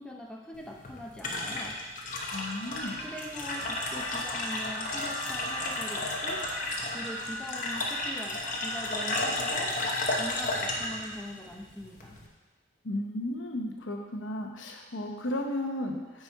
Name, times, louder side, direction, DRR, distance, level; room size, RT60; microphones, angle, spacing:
voice 1, 0.0-1.8 3.0-6.4 6.9-9.7 10.1-12.2, equal, 5° left, -1 dB, 0.6 m, -42 dB
sound 1, 0.5-12.3, left 2 dB, 40° left, 0.9 m, -33 dB
voice 2, 2.3-3.0 12.8-16.2, left 1 dB, 75° left, 2 dB, 0.9 m, -34 dB
Harmonica, 2.5-9.0, right 1 dB, 85° right, 1.0 m, -42 dB
9.0 x 4.4 x 4.6 m, 1.2 s
head